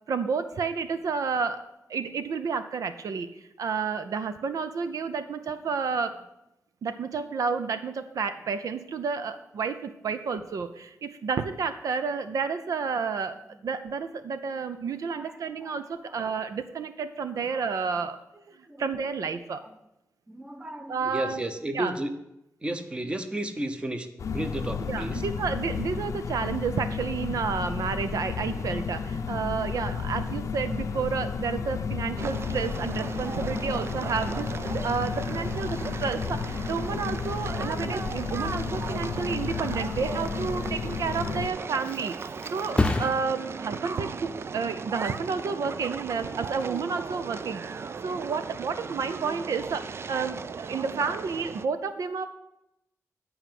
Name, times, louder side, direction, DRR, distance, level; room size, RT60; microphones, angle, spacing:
voice 1, 0.1-1.6 1.9-3.3 3.6-6.2 6.8-18.2 18.8-19.6 20.9-21.4 21.7-21.9 24.9-47.6 48.0-52.3, right 5 dB, 80° right, 10 dB, 0.6 m, -30 dB
voice 2, 15.0-16.2 17.4-18.0 18.5-19.0 19.6-19.8 20.3-22.1 22.6-25.2, right 1 dB, 20° right, 7 dB, 0.9 m, -35 dB
sound 1, 24.2-41.5, left 5 dB, 65° left, 0.6 m, -32 dB
sound 2, 32.2-51.7, right 5 dB, 45° right, 0.4 m, -37 dB
Thump thud, 41.3-48.6 49.1-49.5, left 2 dB, 15° left, 0.7 m, -35 dB
10.0 x 4.7 x 7.6 m, 0.86 s
wide cardioid pair, 120°, 6 cm